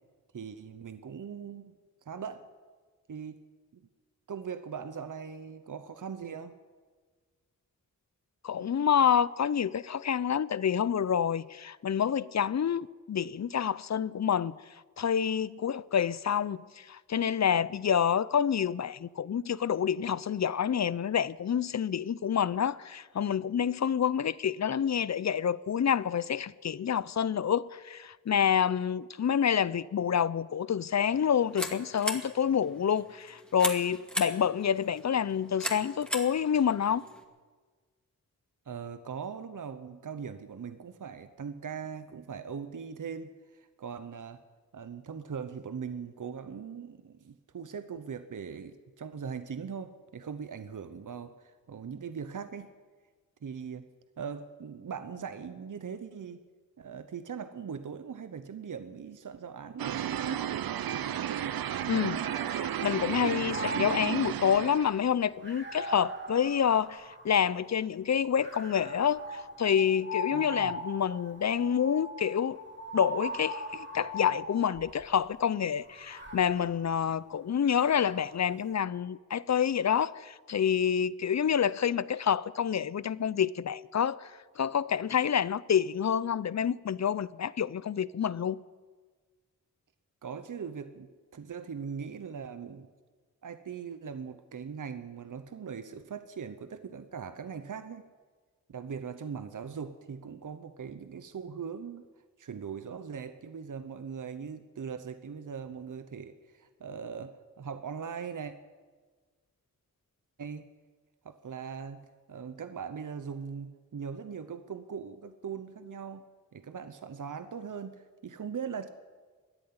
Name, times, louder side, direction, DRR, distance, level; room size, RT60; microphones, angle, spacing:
voice 1, 0.3-1.7 2.0-2.5 3.1-3.4 3.7-3.8 4.3-6.5 38.7-44.4 44.7-52.7 53.4-53.8 54.2-56.4 56.8-60.4 70.3-70.7 90.2-92.9 93.4-98.1 98.7-102.1 102.4-108.5 110.4-110.7 111.2-116.3 116.5-118.9, right 6 dB, 60° right, 0.9 m, -40 dB
voice 2, 8.4-14.6 15.0-37.0 61.9-62.2 62.5-72.6 72.9-88.6, left 8 dB, 50° left, 0.6 m, -28 dB
sound 1, 31.1-37.2, equal, 5° left, 2.4 m, -39 dB
sound 2, 59.8-65.0, right 10 dB, 80° right, 0.6 m, -33 dB
sound 3, 61.7-62.9 63.3-67.7 68.4-75.1 75.8-78.4, equal, 30° right, 2.0 m, -41 dB
14.0 x 10.5 x 9.6 m
cardioid pair, 45°, 35 cm